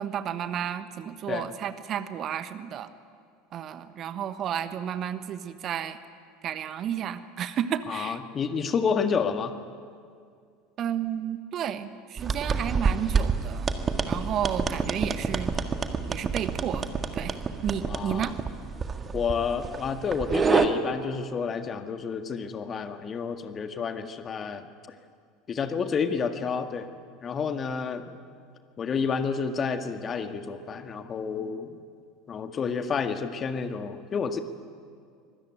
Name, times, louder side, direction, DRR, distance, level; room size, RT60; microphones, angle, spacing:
voice 1, 0.0-2.9 3.5-6.0 6.4-8.2 10.8-13.7 14.1-15.5 16.1-16.9 17.1-17.4 17.6-18.3, right 9 dB, 40° right, 12 dB, 1.2 m, -32 dB
voice 2, 7.9-9.5 17.9-18.3 19.1-24.7 25.5-26.9 27.2-28.1 28.8-31.8 32.3-34.4, left 6 dB, 30° left, 8 dB, 1.8 m, -30 dB
sound 1, 12.2-20.7, right 5 dB, 25° right, 1.7 m, -28 dB
25.0 x 21.0 x 9.2 m, 2.2 s
figure-of-eight pair, 70°, 0 cm